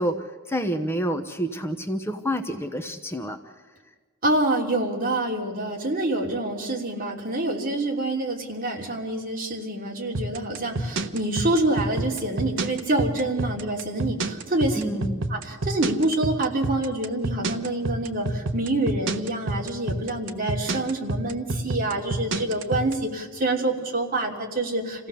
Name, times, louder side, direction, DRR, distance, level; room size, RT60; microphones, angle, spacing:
voice 1, 0.0-3.4 14.7-15.2, equal, 10° left, 6 dB, 1.0 m, -28 dB
voice 2, 4.2-15.0 15.3-25.1, right 2 dB, 45° right, 0 dB, 3.1 m, -26 dB
sound 1, 10.1-22.9, right 2 dB, 65° right, 1.1 m, -27 dB
27.5 x 16.5 x 7.0 m, 1.4 s
head